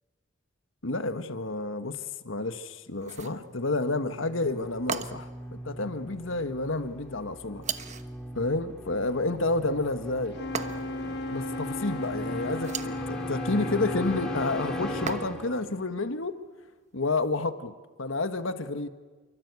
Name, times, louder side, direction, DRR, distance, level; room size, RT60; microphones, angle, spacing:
voice 1, 0.8-7.6 8.3-10.4 11.3-16.4 16.9-17.7 18.0-18.9, left 2 dB, 75° left, 1.5 m, -30 dB
sound 1, 3.0-3.4 4.9-5.4 7.6-8.1 10.5-11.1 12.5-13.0 15.1-15.6, right 6 dB, 35° right, 1.1 m, -36 dB
sound 2, 3.4-16.0, equal, 5° left, 2.5 m, -40 dB
Wind instrument woodwind instrument, 10.3-15.2, left 2 dB, 55° left, 1.2 m, -35 dB
29.0 x 23.5 x 8.3 m
head